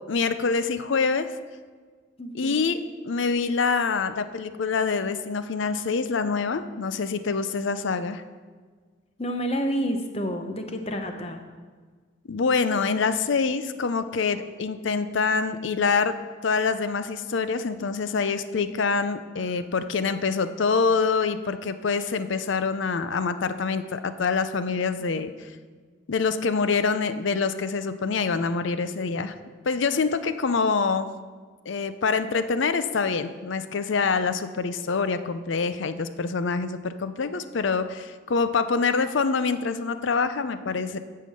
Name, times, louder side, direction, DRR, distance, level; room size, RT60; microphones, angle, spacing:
voice 1, 0.1-1.3 2.3-2.8 3.0-8.2 12.3-16.1 16.4-25.3 26.1-29.3 29.7-31.1 31.7-41.0, left 4 dB, 75° left, 11 dB, 0.5 m, -25 dB
voice 2, 2.2-2.6 9.2-11.4 25.1-25.3 29.0-29.2, equal, 30° left, 5 dB, 0.8 m, -29 dB
8.5 x 5.7 x 7.7 m, 1.5 s
head